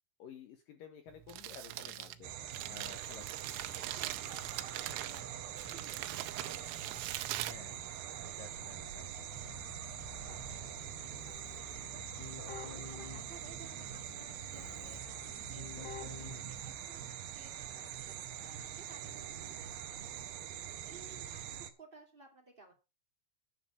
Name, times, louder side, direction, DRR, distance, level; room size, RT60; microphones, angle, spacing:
voice 1, 0.2-2.3 2.7-3.5 6.0-6.1 7.3-7.9 8.2-9.5 16.2-16.5, left 7 dB, 75° left, 6 dB, 2.0 m, -53 dB
Crumpling crinkling, 1.1-8.4, right 15 dB, 90° right, 3.5 m, -42 dB
sound 1, 2.2-21.7, right 10 dB, 70° right, 2.4 m, -44 dB
voice 2, 3.5-7.4 10.2-10.8 11.0-22.7, right 3 dB, 40° right, 1 dB, 0.7 m, -58 dB
Keyboard (musical), 8.8-17.1, left 5 dB, 60° left, 3.5 m, -50 dB
11.0 x 7.6 x 5.3 m, 0.28 s
omnidirectional pair, 5.8 m